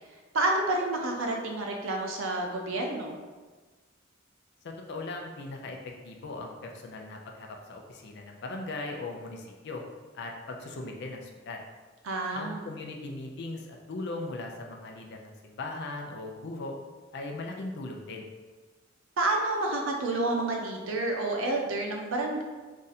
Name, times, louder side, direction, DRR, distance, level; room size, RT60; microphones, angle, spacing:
voice 1, 0.3-3.2 12.0-12.6 19.2-22.4, right 2 dB, 90° right, 1 dB, 0.6 m, -29 dB
voice 2, 4.6-5.8 6.0-9.8 10.1-11.6 12.3-16.7 17.1-18.3, left 2 dB, 60° left, 2 dB, 0.5 m, -39 dB
2.6 x 2.5 x 4.0 m, 1.3 s
head